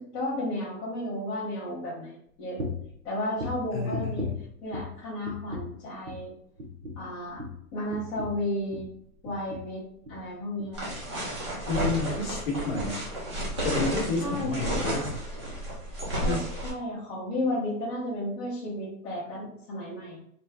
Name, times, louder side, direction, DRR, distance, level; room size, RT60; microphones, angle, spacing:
voice 1, 0.1-2.6 3.0-4.3 4.6-6.3 7.0-7.4 7.7-8.9 9.2-9.8 10.1-10.8 14.2-14.8 16.1-20.2, left 1 dB, 15° left, -10 dB, 0.7 m, -33 dB
sound 1, 2.6-2.9 3.3-5.0 5.2-5.8 6.0-6.3 6.6-9.0 9.2-9.7 10.0-10.2 10.6-10.7, left 2 dB, 50° right, 1.2 m, -37 dB
voice 2, 3.7-4.4 11.7-13.0 13.6-15.1 16.2-16.4, left 3 dB, 35° left, -2 dB, 1.2 m, -30 dB
sound 2, 10.7-16.7, right 1 dB, 20° right, 0.5 m, -32 dB
3.3 x 2.4 x 3.3 m, 0.69 s
hypercardioid pair, 150°, 47 cm